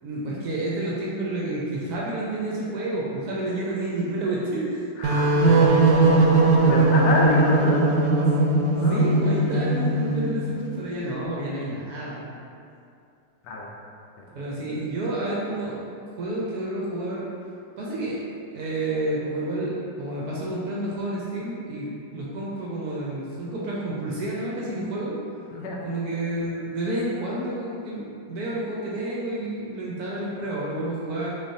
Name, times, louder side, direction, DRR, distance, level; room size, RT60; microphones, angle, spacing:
voice 1, 0.0-4.9 8.2-8.5 8.7-12.3 14.3-15.8 16.2-17.3 17.8-18.2 18.5-21.9 22.1-25.1 25.8-31.3, right 1 dB, 70° right, -5 dB, 1.0 m, -30 dB
voice 2, 5.0-7.9 8.8-9.1 13.4-13.7 14.4-14.5 25.5-25.8, left 2 dB, 85° left, -2 dB, 1.3 m, -28 dB
sound 1, 5.0-10.5, right 2 dB, 90° right, 1.3 m, -19 dB
3.9 x 3.3 x 2.6 m, 2.5 s
omnidirectional pair, 2.0 m